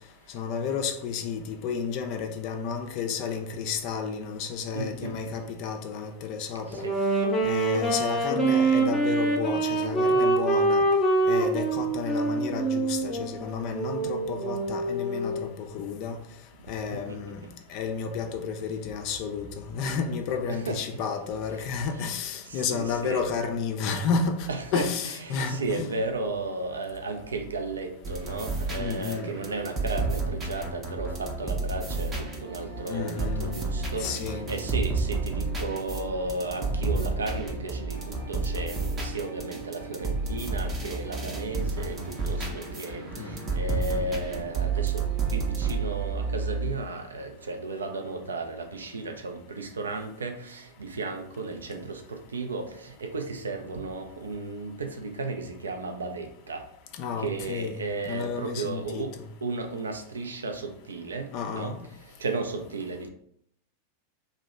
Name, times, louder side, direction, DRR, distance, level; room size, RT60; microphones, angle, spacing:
voice 1, 0.3-6.9 7.4-10.8 11.3-16.2 16.7-25.9 28.8-29.3 32.9-33.6 34.0-34.5 43.2-43.5 57.0-59.2 61.3-61.8, left 6 dB, 45° left, 5 dB, 0.3 m, -31 dB
voice 2, 4.7-5.2 6.7-6.9 16.9-17.2 19.2-19.4 20.5-21.0 22.0-22.1 22.4-23.2 24.5-24.9 25.2-45.0 45.3-56.6 57.2-61.8 62.2-63.1, right 3 dB, 70° right, 5 dB, 0.4 m, -34 dB
Wind instrument woodwind instrument, 6.7-15.4, right 2 dB, 20° left, 0.7 m, -25 dB
sound 1, 28.0-45.8, right 3 dB, 25° right, 0.6 m, -32 dB
sound 2, 31.8-46.7, right 6 dB, 50° right, 0.8 m, -36 dB
2.7 x 2.1 x 3.5 m, 0.70 s
figure-of-eight pair, 90°, 0 cm